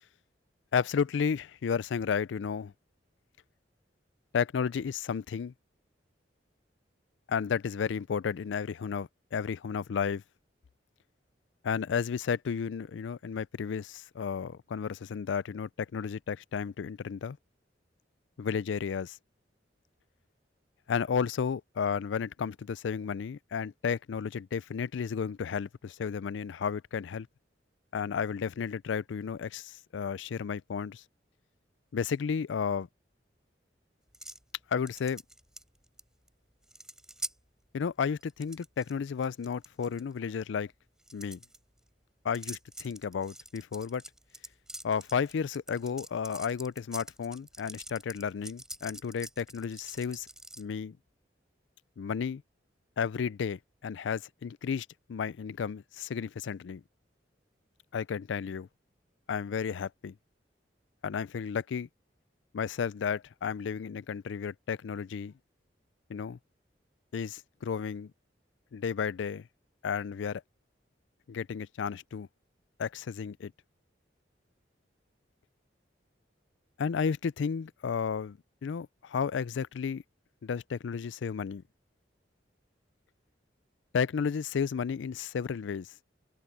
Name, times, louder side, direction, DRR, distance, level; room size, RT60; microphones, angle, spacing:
voice 1, 0.7-2.7 4.3-5.5 7.3-10.2 11.6-17.4 18.4-19.2 20.9-27.3 27.9-31.0 31.9-32.9 34.7-35.2 37.7-40.7 41.1-41.4 42.2-44.0 44.8-50.3 50.6-51.0 52.0-52.4 53.0-56.8 57.9-58.7 59.3-60.1 61.0-61.9 62.5-65.3 66.1-66.4 67.1-68.1 68.7-69.5 69.8-70.4 71.3-72.3 72.8-73.5 76.8-80.0 80.4-81.6 83.9-85.9, left 6 dB, 80° left, 0.4 m, -33 dB
Mechanical Sounds, 34.1-34.4 34.9-36.0 36.3-36.4 36.6-37.3 38.2-38.9 39.2-40.0 41.0-41.6 42.3-50.6, right 1 dB, 5° right, 4.6 m, -45 dB
head